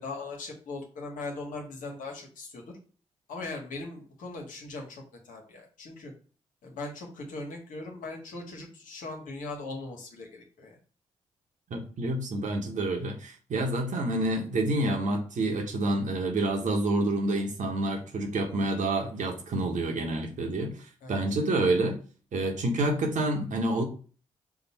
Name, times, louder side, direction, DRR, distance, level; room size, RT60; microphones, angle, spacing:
voice 1, 0.0-2.6 3.3-6.1 6.6-10.8 21.0-21.2, left 3 dB, 80° left, 1 dB, 1.2 m, -39 dB
voice 2, 11.7-20.7 21.1-22.0 22.3-23.8, right 2 dB, 65° right, 3 dB, 1.1 m, -28 dB
5.0 x 2.4 x 4.1 m, 0.39 s
hypercardioid pair, 40°, 14 cm